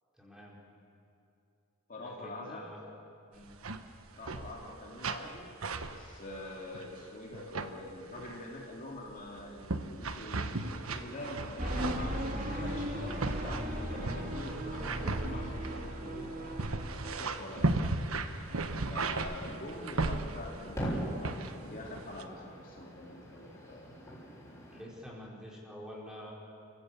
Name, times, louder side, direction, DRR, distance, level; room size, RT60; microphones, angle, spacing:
voice 1, 0.1-0.6 2.0-2.8 3.3-3.5 24.7-26.3, equal, 5° right, -4 dB, 4.5 m, -47 dB
voice 2, 1.9-2.7 4.1-5.5 5.9-16.6 16.9-17.7 18.9-23.9, left 1 dB, 40° left, -2 dB, 2.9 m, -45 dB
sound 1, 3.4-3.8 4.1-4.7 5.0-5.3 5.6-7.0 7.3-7.7 8.2-8.5 9.1-20.7 21.2-21.7 22.0-22.2, right 3 dB, 85° right, 1.2 m, -36 dB
sound 2, 11.6-17.1, equal, 40° right, 3.2 m, -36 dB
sound 3, 18.4-24.8, equal, 15° left, 6.5 m, -42 dB
30.0 x 15.5 x 8.4 m, 2.7 s
head